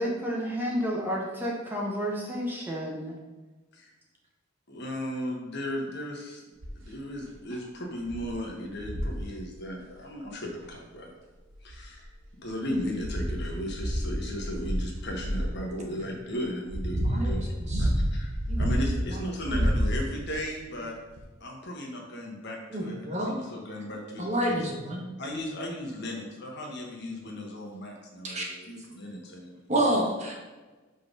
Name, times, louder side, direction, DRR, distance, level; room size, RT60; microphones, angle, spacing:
voice 1, 0.0-3.1, equal, 10° right, -2 dB, 1.0 m, -31 dB
voice 2, 4.7-6.4 6.7-11.1 11.6-12.1 12.4-17.5 17.8-18.3 18.6-21.0 21.4-24.6 25.2-29.6, left 1 dB, 55° left, 0 dB, 1.3 m, -36 dB
sound 1, 6.6-6.9 7.5-7.6 8.1-8.3 8.8-9.2 10.6-10.7 11.5-12.2 12.7-15.6 16.3-19.1 19.4-20.3 21.2-21.3, equal, 70° right, 1.1 m, -29 dB
voice 3, 17.0-17.9 18.5-18.6 19.1-19.2 19.5-19.6 22.7-23.3 24.2-25.0 28.2-28.5 29.7-30.3, right 1 dB, 35° right, -1 dB, 1.2 m, -29 dB
5.4 x 4.0 x 5.2 m, 1.2 s
head